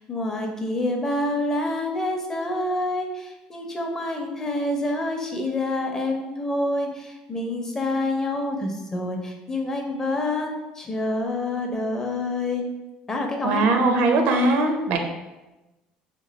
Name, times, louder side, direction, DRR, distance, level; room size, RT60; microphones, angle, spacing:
voice 1, 0.0-12.7 13.1-13.7, left 2 dB, 20° left, 2 dB, 0.5 m, -27 dB
voice 2, 13.4-15.0, right 2 dB, 70° right, 4 dB, 0.5 m, -20 dB
2.9 x 2.3 x 4.0 m, 1.0 s
cardioid pair, 130°, 3 cm